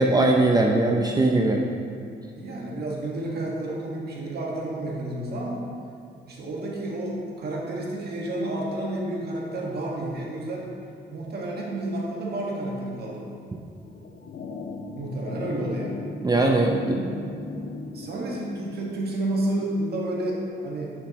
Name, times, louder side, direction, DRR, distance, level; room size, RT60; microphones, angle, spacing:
voice 1, 0.0-1.6 16.2-16.8, right 2 dB, 20° right, 1 dB, 0.6 m, -20 dB
voice 2, 2.4-5.7 6.3-10.7 11.1-13.2 14.9-16.0 16.8-17.0 17.9-20.9, right 1 dB, 55° right, -3 dB, 1.7 m, -30 dB
sound 1, 13.8-18.8, left 3 dB, 55° left, 0.8 m, -37 dB
9.4 x 7.1 x 3.0 m, 2.4 s
cardioid pair, 90°, 20 cm